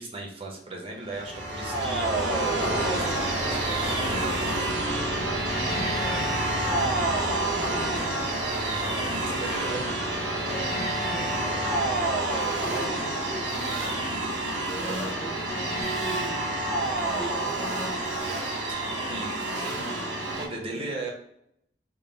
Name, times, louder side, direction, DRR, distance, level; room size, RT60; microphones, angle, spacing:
voice 1, 0.0-4.4 8.6-8.9 9.2-10.1 12.3-12.5 19.1-19.8 20.2-21.1, right 2 dB, 35° right, 0 dB, 0.8 m, -37 dB
sound 1, 1.0-20.5, right 1 dB, 80° right, 1.0 m, -28 dB
voice 2, 3.4-8.3 8.8-10.7 11.0-18.0 19.6-21.0, equal, 5° left, -3 dB, 0.6 m, -42 dB
3.6 x 2.1 x 3.9 m, 0.75 s
head